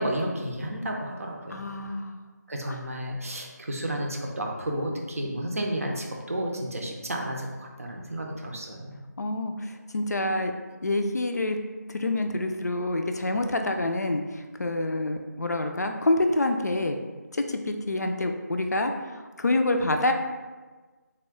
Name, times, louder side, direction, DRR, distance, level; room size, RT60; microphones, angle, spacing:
voice 1, 0.0-1.6 2.5-9.0, right 1 dB, 50° right, 0 dB, 0.6 m, -32 dB
voice 2, 1.5-2.2 2.6-2.8 9.2-10.5 10.8-11.6 11.9-17.0 17.3-20.1, left 2 dB, 65° left, 5 dB, 0.4 m, -27 dB
3.5 x 2.2 x 3.5 m, 1.3 s
figure-of-eight pair, 165°, 10 cm